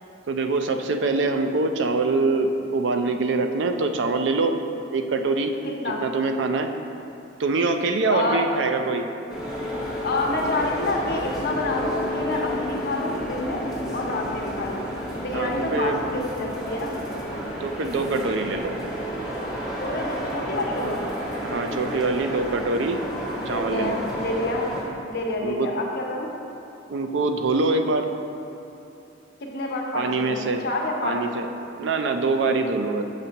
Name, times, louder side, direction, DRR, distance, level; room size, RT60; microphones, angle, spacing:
voice 1, 0.3-4.5 4.9-5.5 6.0-6.7 7.4-9.1 15.3-16.0 17.6-18.7 20.8-21.0 21.4-23.0 23.5-24.0 25.4-25.7 26.9-28.1 29.9-30.6 31.0-31.5 31.8-33.0, right 3 dB, 70° right, 6 dB, 0.4 m, -24 dB
voice 2, 5.6-6.0 8.1-8.4 10.0-14.9 15.2-16.9 19.8-21.1 23.5-24.7 25.1-26.3 29.4-31.2, left 2 dB, 60° left, -1 dB, 0.9 m, -28 dB
sound 1, 9.3-24.8, equal, 5° right, 1.0 m, -31 dB
6.7 x 6.0 x 2.8 m, 2.9 s
head